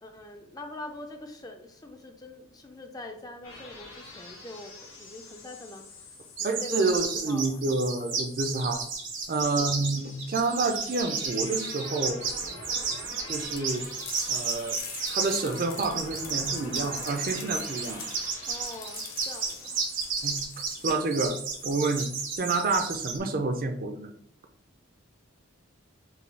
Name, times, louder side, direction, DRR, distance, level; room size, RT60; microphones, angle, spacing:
voice 1, 0.0-5.8 6.4-7.0 7.3-7.6 9.4-9.8 18.5-19.8, left 1 dB, 20° left, 4 dB, 0.4 m, -43 dB
sound 1, 3.4-22.8, left 2 dB, 75° left, 1.6 m, -47 dB
voice 2, 6.4-8.8 9.3-12.2 13.3-13.9 14.3-14.8 15.1-18.1 20.2-20.4 20.8-21.4 21.6-22.1 22.4-24.1, right 3 dB, 45° right, 6 dB, 0.4 m, -28 dB
sound 2, 6.4-23.2, right 5 dB, 65° right, 0.9 m, -32 dB
sound 3, 13.5-22.9, left 6 dB, 45° left, 0.7 m, -45 dB
5.3 x 2.3 x 3.2 m, 0.65 s
head